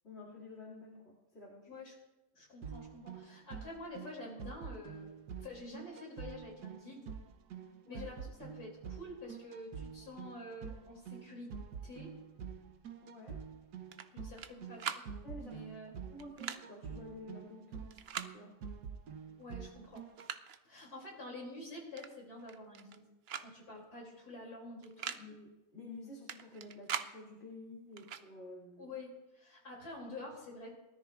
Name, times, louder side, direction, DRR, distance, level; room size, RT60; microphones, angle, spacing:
voice 1, 0.0-1.8 7.8-8.1 13.0-13.4 15.2-15.6 16.0-18.5 25.1-28.9, left 2 dB, 40° left, -4 dB, 2.7 m, -51 dB
voice 2, 2.3-5.1 5.4-7.1 7.9-11.5 11.8-12.1 14.1-14.9 15.4-16.0 19.4-20.0 20.6-23.0 23.4-25.2 28.8-30.7, left 2 dB, 70° left, -2 dB, 3.6 m, -48 dB
sound 1, 2.6-20.3, right 6 dB, 85° right, 1.4 m, -47 dB
sound 2, 13.9-14.5 14.8-15.1 16.2-16.6 17.9-18.3 19.4-19.5 19.9-20.6 22.0-22.1 22.4-23.0 23.3-23.5 23.8-23.9 24.8-25.2 26.3-27.1 28.0-28.2, right 8 dB, 60° right, 0.7 m, -41 dB
23.0 x 13.5 x 2.5 m, 1.1 s
omnidirectional pair, 1.7 m